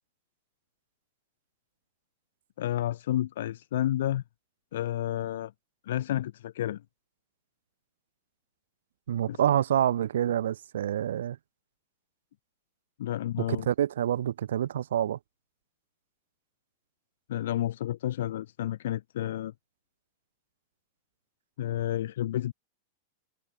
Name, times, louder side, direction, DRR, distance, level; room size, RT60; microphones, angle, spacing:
voice 1, 2.6-4.2 4.7-5.5 5.9-6.8 9.3-9.4 13.0-13.7 17.3-19.5 21.6-22.5, left 12 dB, 65° left, 0.7 m, -30 dB
voice 2, 9.1-11.4 13.4-15.2, right 10 dB, 65° right, 0.7 m, -27 dB
figure-of-eight pair, 90°, 0 cm